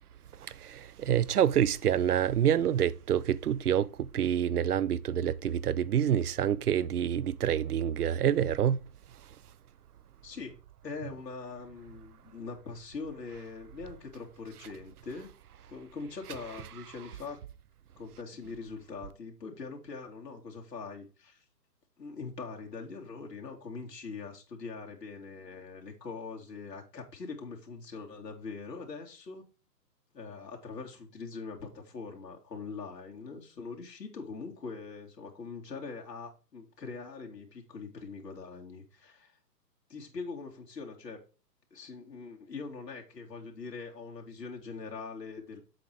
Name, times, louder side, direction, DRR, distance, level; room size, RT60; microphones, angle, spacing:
voice 1, 0.3-8.8, right 9 dB, 65° right, 0.6 m, -27 dB
voice 2, 10.2-10.6 10.8-15.3 15.7-17.4 17.9-21.4 22.0-29.4 30.1-39.3 39.9-41.2 41.7-45.6, left 4 dB, 80° left, 2.7 m, -42 dB
7.7 x 4.5 x 4.9 m
hypercardioid pair, 175°, 49 cm